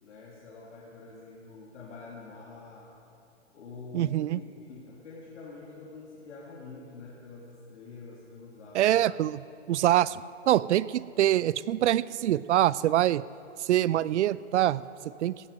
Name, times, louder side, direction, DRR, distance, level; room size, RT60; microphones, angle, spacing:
voice 1, 0.0-2.9 3.5-4.4 4.7-9.0, left 4 dB, 75° left, -4 dB, 2.5 m, -46 dB
voice 2, 3.9-4.4 8.7-13.2 13.7-14.8 15.2-15.3, right 13 dB, 70° right, 19 dB, 0.5 m, -25 dB
16.5 x 11.0 x 5.3 m, 2.6 s
hypercardioid pair, 125°, 36 cm